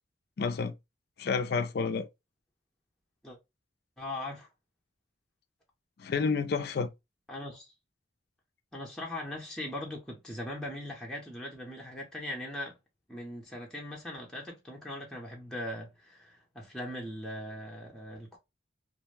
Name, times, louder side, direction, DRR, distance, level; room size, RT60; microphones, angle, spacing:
voice 1, 0.4-0.7 1.2-2.1 6.0-6.9, left 5 dB, 55° left, 0.4 m, -29 dB
voice 2, 4.0-4.5 7.3-7.7 8.7-12.8 13.1-18.4, left 1 dB, 5° left, 0.7 m, -40 dB
2.5 x 2.0 x 3.1 m
head